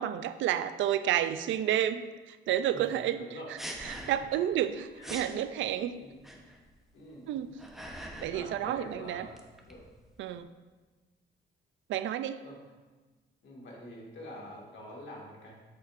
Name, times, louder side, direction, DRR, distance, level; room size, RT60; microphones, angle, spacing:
voice 1, 0.0-3.2 3.8-5.9 7.3-7.5 8.2-9.3 10.2-10.5 11.9-12.4, right 11 dB, 75° right, 12 dB, 0.4 m, -30 dB
voice 2, 2.7-3.5 3.9-4.4 4.9-5.3 6.0-6.2 6.9-7.5 7.9-9.4 9.7-9.8 12.4-12.6 13.4-15.5, equal, 65° left, -2 dB, 1.9 m, -47 dB
sound 1, 3.6-4.4 4.7-4.8 5.0-5.4 6.2-6.7 7.3-8.4 8.7-10.4, equal, ahead, 0.9 m, -43 dB
8.3 x 6.8 x 2.5 m, 1.3 s
cardioid pair, 90°, 20 cm